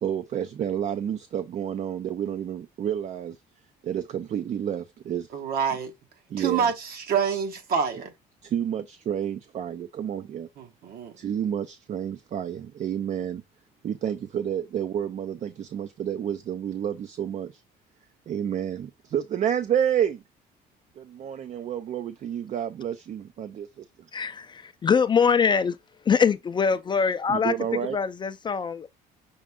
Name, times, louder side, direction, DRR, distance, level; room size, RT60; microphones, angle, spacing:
voice 1, 0.0-3.4 3.8-5.3 6.3-6.7 8.4-10.5 11.2-13.4 13.8-17.6 18.3-20.2 21.0-23.8 27.3-28.0, right 9 dB, 45° right, 0.5 m, -30 dB
voice 2, 5.3-5.9 6.4-8.1 10.6-11.1, right 7 dB, 65° right, 1.3 m, -27 dB
voice 3, 24.1-25.8 26.1-27.5 27.9-28.9, left 6 dB, 25° left, 0.4 m, -23 dB
6.2 x 2.4 x 3.5 m
cardioid pair, 110°, 17 cm